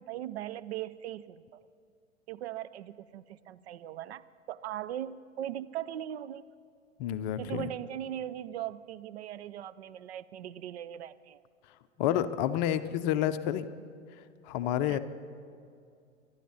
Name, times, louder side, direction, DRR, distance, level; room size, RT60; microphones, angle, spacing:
voice 1, 0.0-1.6 2.3-6.5 7.4-11.4 14.8-15.0, right 11 dB, 55° right, 15 dB, 0.6 m, -39 dB
voice 2, 7.0-7.7 12.0-13.7 14.5-15.0, left 11 dB, 35° left, 11 dB, 0.7 m, -29 dB
23.5 x 12.0 x 4.3 m, 2.4 s
figure-of-eight pair, 105°, 38 cm